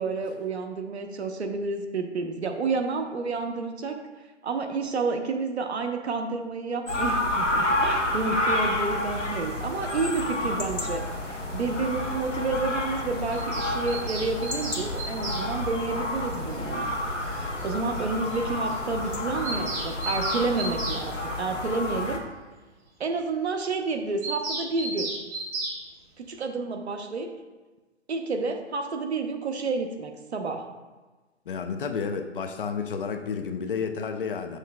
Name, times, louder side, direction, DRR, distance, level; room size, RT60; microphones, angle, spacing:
voice 1, 0.0-4.0 4.4-22.2 23.0-25.1 26.2-27.3 28.1-30.7, right 4 dB, 65° right, 5 dB, 0.8 m, -30 dB
sound 1, 6.9-22.2, left 1 dB, 85° left, 1.1 m, -29 dB
Bird vocalization bird call bird song, 13.3-15.5 16.9-17.0 17.2-17.3 17.6-17.7 18.0-18.1 18.3-18.4 18.7-18.8 19.1-21.0 24.2-25.8, right 2 dB, 15° right, 0.5 m, -34 dB
voice 2, 31.5-34.6, left 6 dB, 50° left, 7 dB, 0.6 m, -31 dB
7.2 x 6.4 x 2.2 m, 1.2 s
figure-of-eight pair, 120°, 35 cm